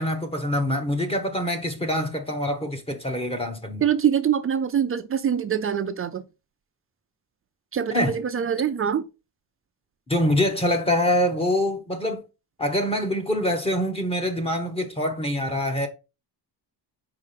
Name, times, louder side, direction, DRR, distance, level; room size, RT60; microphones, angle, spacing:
voice 1, 0.0-3.8 7.9-8.2 10.1-12.2 12.6-15.9, left 1 dB, 15° left, 1.0 m, -25 dB
voice 2, 3.8-6.2 7.7-9.0, right 8 dB, 30° right, 0.5 m, -24 dB
4.9 x 4.8 x 5.6 m
cardioid pair, 160°, 42 cm